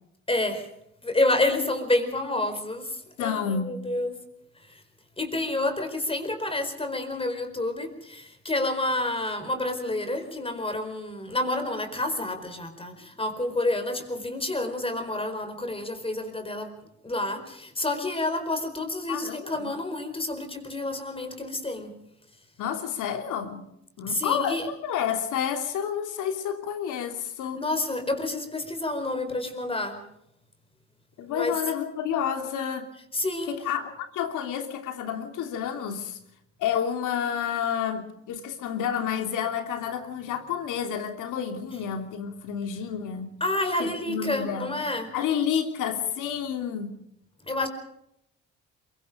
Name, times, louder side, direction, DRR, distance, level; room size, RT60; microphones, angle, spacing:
voice 1, 0.3-0.7 1.0-4.2 4.5-4.8 5.2-16.7 17.0-21.9 24.1-24.7 27.5-30.0 31.3-31.6 33.1-33.5 43.4-45.1 47.4-47.7, left 2 dB, 20° left, 7 dB, 4.6 m, -29 dB
voice 2, 3.2-3.8 19.1-19.7 22.6-23.7 24.0-27.6 31.2-32.9 33.5-36.2 36.6-43.3 43.8-44.8 45.1-46.9, left 8 dB, 90° left, 6 dB, 3.0 m, -30 dB
23.5 x 23.0 x 5.1 m, 0.78 s
cardioid pair, 90°, 30 cm